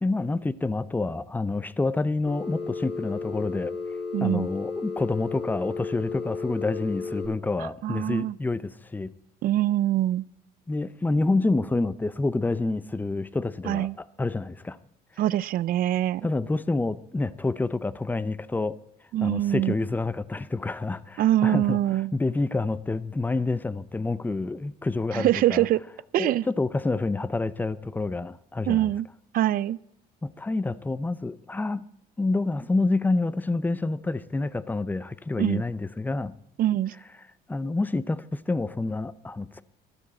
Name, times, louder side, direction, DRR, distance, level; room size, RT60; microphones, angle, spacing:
voice 1, 0.0-3.7 4.2-9.1 10.7-14.8 16.2-18.8 19.2-21.8 22.1-25.7 26.1-28.9 30.2-31.9 32.2-36.3 37.5-39.6, left 3 dB, 10° left, 16 dB, 0.6 m, -28 dB
Telephone, 2.3-7.3, left 4 dB, 50° left, 7.3 m, -33 dB
voice 2, 4.1-4.5 7.8-8.4 9.4-10.3 13.7-14.0 15.2-16.3 19.1-19.7 21.2-22.1 25.1-25.8 26.1-26.5 28.7-29.1 29.3-29.8 35.4-35.6 36.6-36.9, right 13 dB, 60° right, 20 dB, 0.4 m, -24 dB
15.0 x 12.5 x 4.2 m, 0.73 s
cardioid pair, 110°, 17 cm